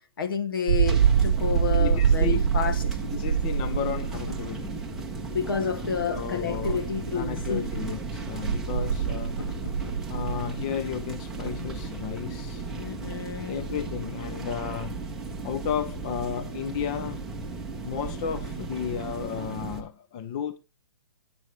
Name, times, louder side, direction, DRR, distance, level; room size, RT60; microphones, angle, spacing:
voice 1, 0.0-2.8 5.3-7.7 12.7-13.6, left 7 dB, 65° left, 2.1 m, -30 dB
sound 1, 0.7-5.0 5.9-6.0 6.6-11.0, right 8 dB, 55° right, 0.8 m, -25 dB
sound 2, 0.8-19.8, right 4 dB, 5° right, 0.9 m, -36 dB
voice 2, 1.8-2.4 3.0-4.8 6.1-6.8 7.1-9.4 10.1-12.7 13.5-15.0 15.4-17.2 17.8-20.6, left 8 dB, 20° left, 0.4 m, -33 dB
sound 3, 3.9-11.5, left 4 dB, 85° left, 2.0 m, -46 dB
10.5 x 9.0 x 3.2 m
hypercardioid pair, 175°, 12 cm